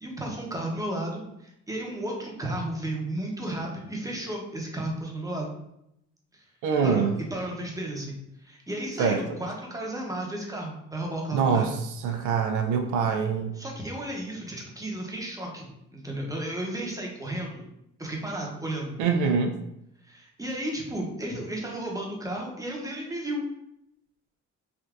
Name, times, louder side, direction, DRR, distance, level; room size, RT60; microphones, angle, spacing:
voice 1, 0.0-5.5 6.3-6.4 6.8-11.7 13.5-17.6 18.0-19.0 20.0-23.4, right 1 dB, 10° right, -1 dB, 0.7 m, -33 dB
voice 2, 6.6-7.1 9.0-9.2 11.3-11.8 12.0-13.6 19.0-19.6, right 6 dB, 75° right, 4 dB, 0.4 m, -24 dB
3.4 x 2.6 x 2.4 m, 0.80 s
cardioid pair, 90°, 30 cm